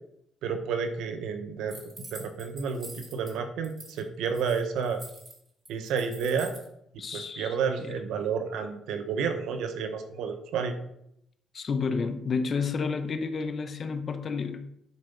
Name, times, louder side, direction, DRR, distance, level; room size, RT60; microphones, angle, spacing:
voice 1, 0.4-1.8 2.1-5.0 5.7-6.6 7.1-10.7, right 6 dB, 85° right, 7 dB, 1.1 m, -30 dB
sound 1, 1.7-3.3 3.6-4.0 4.3-6.7, right 1 dB, 25° right, 3.0 m, -46 dB
voice 2, 7.0-7.5 7.8-7.9 11.5-14.6, left 5 dB, 45° left, 8 dB, 1.0 m, -30 dB
9.6 x 4.5 x 5.3 m, 0.76 s
cardioid pair, 90°, 0 cm